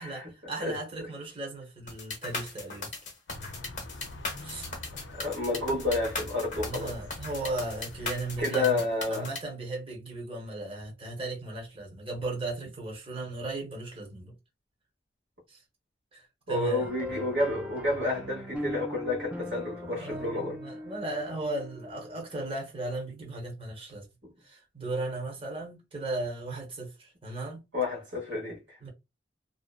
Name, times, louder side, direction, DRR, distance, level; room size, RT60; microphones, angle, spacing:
voice 1, 0.0-2.9 4.4-4.7 6.6-14.3 15.5-15.6 16.1-16.9 19.7-24.1 24.4-27.6 28.8-28.9, right 2 dB, 30° right, 1.0 m, -36 dB
sound 1, 1.9-9.4, left 3 dB, 45° left, 0.7 m, -37 dB
sound 2, 3.3-8.4, left 1 dB, 85° left, 0.5 m, -44 dB
voice 2, 5.1-6.9 8.4-9.3 16.5-20.6 27.7-28.8, left 2 dB, 75° right, 1.2 m, -30 dB
sound 3, 16.8-22.4, left 1 dB, 5° right, 0.4 m, -40 dB
2.6 x 2.1 x 2.3 m
head